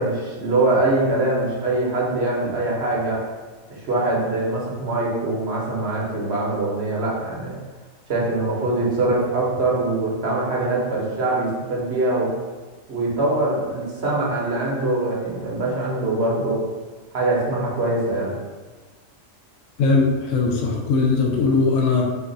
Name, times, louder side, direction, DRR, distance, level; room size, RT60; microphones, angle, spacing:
voice 1, 0.0-3.2 3.7-7.6 8.1-12.3 12.9-16.6 17.1-18.4, right 2 dB, 55° right, -4 dB, 1.2 m, -23 dB
voice 2, 19.8-22.0, left 4 dB, 75° left, -1 dB, 0.9 m, -19 dB
4.6 x 2.4 x 3.8 m, 1.3 s
omnidirectional pair, 1.3 m